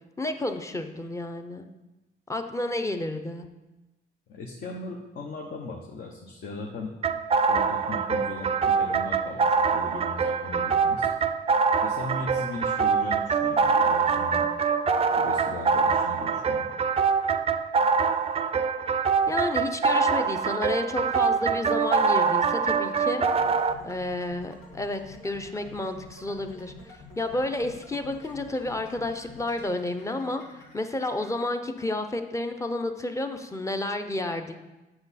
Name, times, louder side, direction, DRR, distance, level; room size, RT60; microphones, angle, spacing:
voice 1, 0.2-1.7 2.3-3.5 19.3-23.2 23.8-26.7 27.2-34.6, left 2 dB, 15° left, 6 dB, 0.7 m, -31 dB
voice 2, 4.3-6.9 7.5-11.1 11.8-14.5 15.2-16.7, left 3 dB, 55° left, 0 dB, 1.0 m, -38 dB
sound 1, 7.0-23.7, right 5 dB, 30° right, 0.5 m, -24 dB
sound 2, 23.4-31.4, left 3 dB, 90° left, 2.3 m, -49 dB
7.8 x 6.1 x 4.1 m, 1.1 s
cardioid pair, 90°, 20 cm